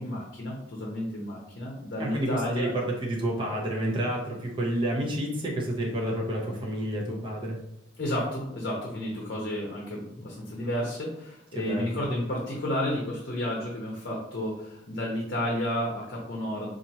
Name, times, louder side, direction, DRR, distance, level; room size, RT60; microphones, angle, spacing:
voice 1, 0.0-2.7 8.0-16.7, left 1 dB, 55° left, -2 dB, 0.7 m, -31 dB
voice 2, 2.0-7.6 11.5-12.0, right 1 dB, 25° right, -2 dB, 0.7 m, -30 dB
4.2 x 2.5 x 2.8 m, 0.84 s
head